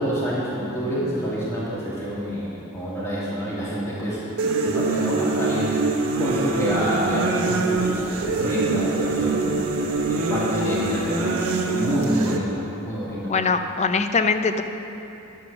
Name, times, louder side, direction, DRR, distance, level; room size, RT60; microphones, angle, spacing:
voice 1, 0.0-13.3, equal, 15° left, -9 dB, 2.1 m, -27 dB
sound 1, 4.4-12.4, right 3 dB, 80° right, 1.1 m, -24 dB
voice 2, 13.3-14.6, left 4 dB, 30° left, 8 dB, 0.5 m, -22 dB
11.0 x 6.9 x 6.8 m, 2.9 s
head